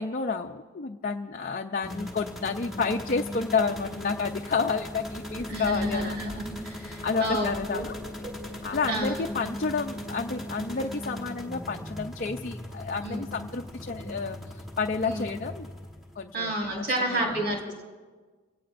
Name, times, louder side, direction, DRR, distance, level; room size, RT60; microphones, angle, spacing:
voice 1, 0.0-6.4 6.8-7.9 8.6-15.7 16.2-17.4, left 4 dB, 40° left, 2 dB, 0.5 m, -30 dB
sound 1, 1.8-16.3, left 1 dB, ahead, 1.3 m, -39 dB
voice 2, 5.5-7.9 8.2-8.3 8.9-9.4 13.0-13.3 14.0-14.1 15.0-15.3 16.3-17.8, right 1 dB, 55° right, -1 dB, 4.4 m, -30 dB
26.5 x 17.5 x 2.6 m, 1.4 s
head